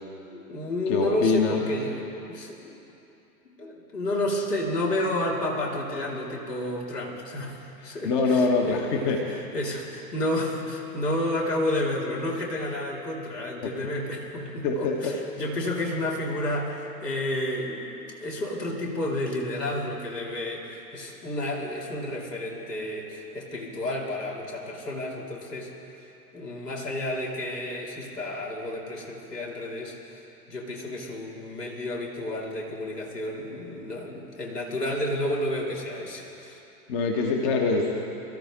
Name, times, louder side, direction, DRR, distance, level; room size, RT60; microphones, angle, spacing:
voice 1, 0.3-2.8 3.4-17.9 18.2-25.7 26.3-36.6, left 1 dB, 80° left, -2 dB, 3.0 m, -31 dB
voice 2, 0.9-1.6 7.8-9.2 13.6-13.7 14.6-15.2 36.9-37.9, left 4 dB, 45° left, 1 dB, 1.5 m, -24 dB
23.5 x 13.5 x 3.7 m, 2.9 s
figure-of-eight pair, 100°, 47 cm